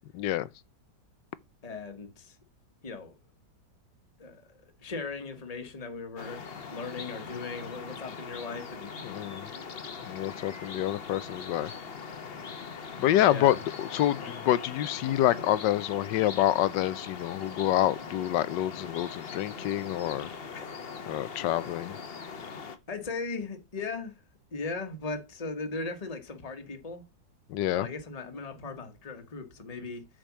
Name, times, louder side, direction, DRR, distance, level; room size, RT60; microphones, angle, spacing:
voice 1, 0.1-0.5 9.0-9.5 10.0-11.7 13.0-20.3 21.1-21.9 27.5-27.9, left 13 dB, 80° left, 1.3 m, -27 dB
voice 2, 1.6-2.4 2.8-3.2 4.2-4.5 4.8-8.9 13.2-13.6 20.5-21.0 22.9-24.1 24.5-27.0 27.8-30.1, left 3 dB, 25° left, 1.4 m, -38 dB
sound 1, 6.2-22.8, left 5 dB, 40° left, 1.0 m, -41 dB
7.7 x 5.1 x 6.1 m
omnidirectional pair, 1.9 m